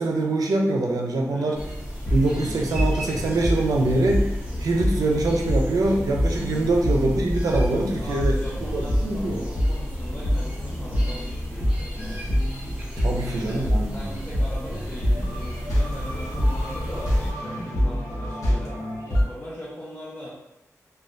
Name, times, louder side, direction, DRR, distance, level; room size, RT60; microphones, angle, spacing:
voice 1, 0.0-1.6 2.1-4.3 4.6-8.4 8.7-9.4 13.0-13.9, right 2 dB, 80° right, 0 dB, 0.4 m, -24 dB
voice 2, 1.2-1.6 6.7-6.8 8.0-12.3 13.0-18.8 19.1-20.4, left 1 dB, 30° left, -8 dB, 0.7 m, -40 dB
sound 1, 1.5-17.3, equal, 15° right, 1.3 m, -33 dB
sound 2, 2.1-19.2, equal, 70° left, 0.9 m, -26 dB
3.2 x 2.2 x 2.5 m, 0.90 s
wide cardioid pair, 70°, 6 cm